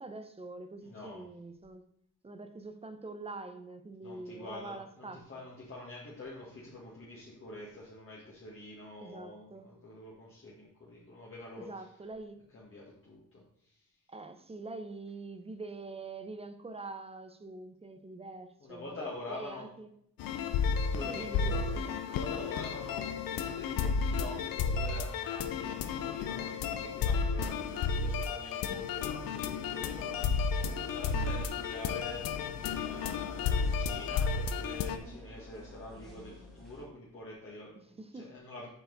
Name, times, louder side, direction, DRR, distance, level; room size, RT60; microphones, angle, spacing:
voice 1, 0.0-1.8 2.2-5.3 9.0-9.7 11.6-12.4 14.1-19.9 21.1-22.0 37.8-38.3, right 3 dB, 20° right, 9 dB, 0.7 m, -45 dB
voice 2, 0.8-1.2 4.0-11.7 12.5-13.9 18.6-19.7 20.8-21.7 22.1-30.5 30.9-32.3 32.6-38.7, left 2 dB, 40° left, -5 dB, 1.8 m, -46 dB
sound 1, 20.2-35.0, left 5 dB, 85° left, 0.6 m, -32 dB
sound 2, 29.6-36.9, left 2 dB, ahead, 1.9 m, -50 dB
8.1 x 4.6 x 4.0 m, 0.69 s
cardioid pair, 105°, 33 cm